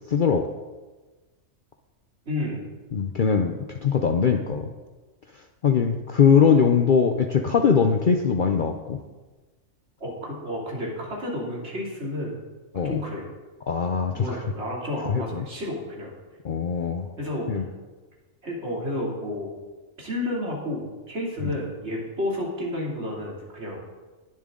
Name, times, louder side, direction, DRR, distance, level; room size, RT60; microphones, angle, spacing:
voice 1, 0.1-0.5 2.9-4.7 5.6-9.0 12.7-13.0 13.7-14.4 15.1-15.5 16.4-17.1 17.5-17.7 21.4-21.5, left 6 dB, 50° left, 5 dB, 0.6 m, -21 dB
voice 2, 2.3-2.7 10.0-12.3 12.8-13.3 14.1-16.1 17.2-17.6 18.4-19.5 20.0-23.8, left 1 dB, 55° right, -3 dB, 3.2 m, -31 dB
20.0 x 7.5 x 3.8 m, 1.3 s
omnidirectional pair, 1.4 m